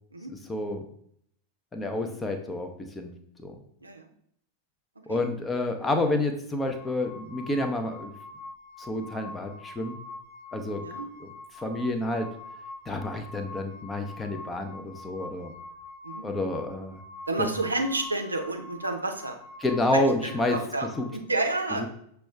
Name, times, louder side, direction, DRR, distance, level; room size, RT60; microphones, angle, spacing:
voice 1, 0.3-0.9 1.7-2.7 3.0-3.1 3.4-3.5 5.1-8.1 8.8-10.0 10.5-10.8 11.2-11.3 11.6-12.3 12.9-15.5 16.2-17.0 17.4-17.5 19.6-20.6 21.0-21.1 21.7-21.9, left 2 dB, 15° left, 5 dB, 0.6 m, -29 dB
sound 1, 6.6-21.1, left 2 dB, 60° left, 1.2 m, -45 dB
voice 2, 17.3-19.4 19.9-20.9 21.1-21.9, right 2 dB, 80° right, 4 dB, 0.5 m, -30 dB
6.0 x 2.3 x 3.2 m, 0.68 s
figure-of-eight pair, 90°, 0 cm